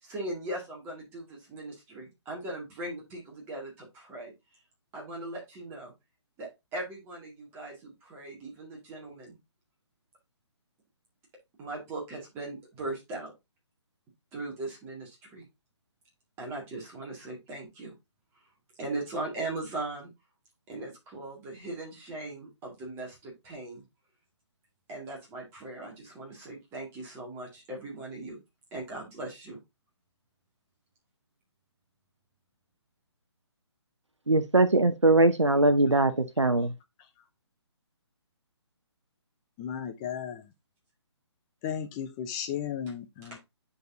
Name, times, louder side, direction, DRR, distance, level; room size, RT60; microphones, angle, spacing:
voice 1, 0.0-4.3 4.9-5.9 6.4-9.4 11.6-13.3 14.3-15.5 16.4-17.9 18.8-20.1 20.7-23.8 24.9-28.4 28.7-29.6 43.2-43.4, right 2 dB, 15° right, 2.0 m, -39 dB
voice 2, 34.3-36.7, right 2 dB, 85° right, 0.8 m, -21 dB
voice 3, 39.6-40.4 41.6-43.4, left 8 dB, 15° left, 0.5 m, -35 dB
9.1 x 4.1 x 2.7 m
figure-of-eight pair, 140°, 15 cm